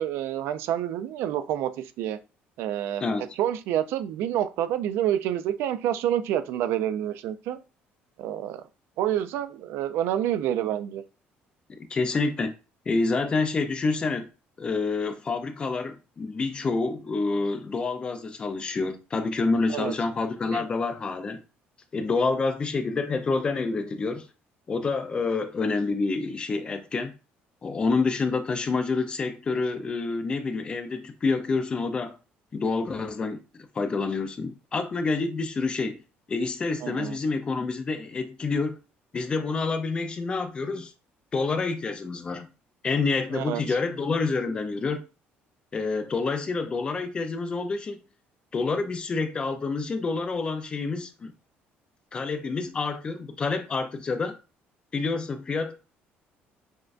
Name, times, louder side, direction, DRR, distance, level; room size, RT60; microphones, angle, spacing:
voice 1, 0.0-1.7 2.0-2.2 2.6-3.0 3.4-7.6 8.2-8.6 9.0-11.0 19.7-19.9 20.5-20.6 36.8-37.2 43.3-43.6, right 11 dB, 75° right, 0.4 m, -28 dB
voice 2, 11.9-12.5 12.9-14.3 14.6-21.4 21.9-24.3 24.7-27.1 27.6-32.2 32.5-33.4 33.7-36.0 36.3-38.8 39.1-40.9 41.3-42.5 42.8-45.0 45.7-48.0 48.5-51.3 52.1-54.4 54.9-55.7, left 4 dB, 25° left, 0.4 m, -28 dB
6.2 x 2.2 x 2.4 m
cardioid pair, 155°, 4 cm